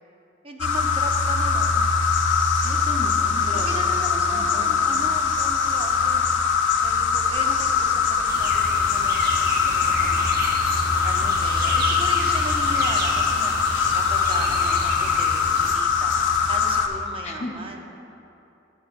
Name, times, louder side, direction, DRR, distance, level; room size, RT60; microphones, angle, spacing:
voice 1, 0.4-1.9 3.5-6.3 6.8-16.2 16.5-17.9, right 1 dB, 30° right, 2 dB, 0.7 m, -37 dB
sound 1, 0.6-16.9, left 5 dB, 85° left, 0.6 m, -22 dB
voice 2, 2.6-4.9 17.2-17.6, left 1 dB, 35° left, 0 dB, 0.9 m, -36 dB
sound 2, 8.3-15.8, right 2 dB, 55° right, 0.8 m, -32 dB
11.0 x 8.1 x 2.6 m, 2.8 s
head